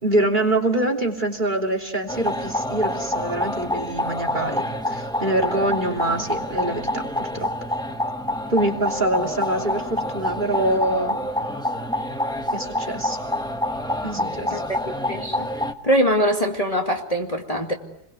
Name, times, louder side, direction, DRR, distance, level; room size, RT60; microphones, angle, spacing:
voice 1, 0.0-7.5 8.5-11.2 12.5-13.2 14.0-14.6, right 1 dB, 30° right, 5 dB, 3.2 m, -25 dB
sound 1, 2.1-15.7, left 1 dB, 5° left, 1.1 m, -27 dB
voice 2, 15.1-15.5 15.8-17.7, equal, 25° left, 1 dB, 2.1 m, -22 dB
29.5 x 22.0 x 8.1 m, 0.88 s
omnidirectional pair, 1.6 m